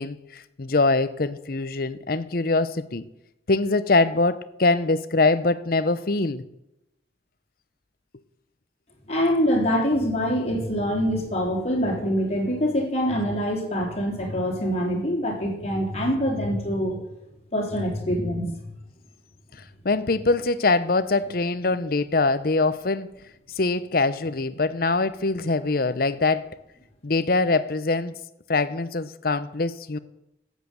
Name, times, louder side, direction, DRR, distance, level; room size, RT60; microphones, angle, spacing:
voice 1, 0.0-3.1 3.5-6.4 19.8-23.1 23.6-26.5 27.0-28.2 28.5-30.0, left 3 dB, 55° left, 0.8 m, -23 dB
voice 2, 9.1-17.0 17.5-18.5, equal, 40° left, 3.8 m, -24 dB
12.5 x 8.3 x 8.0 m
head